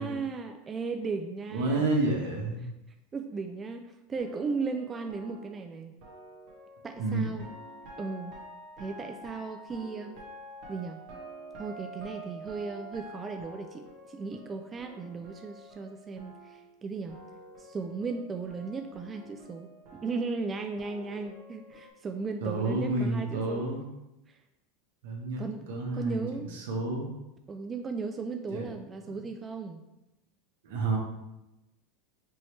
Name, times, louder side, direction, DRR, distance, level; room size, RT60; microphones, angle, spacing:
voice 1, 0.0-1.9 3.1-6.0 6.8-7.5 8.0-8.4 8.8-10.2 10.7-11.0 11.6-17.2 17.6-23.6 24.3-24.4 25.4-25.6 25.9-26.5 27.5-29.8, right 4 dB, 25° right, 6 dB, 0.3 m, -36 dB
voice 2, 1.5-2.7 7.0-7.2 22.4-23.8 25.0-26.2 26.5-27.1 28.5-28.7 29.1-29.2 30.6-31.0, right 2 dB, 75° right, -1 dB, 1.3 m, -30 dB
sound 1, 4.1-16.8 17.1-21.9, right 1 dB, 55° right, 1.5 m, -48 dB
5.3 x 3.1 x 3.2 m, 0.95 s
supercardioid pair, 115°, 0 cm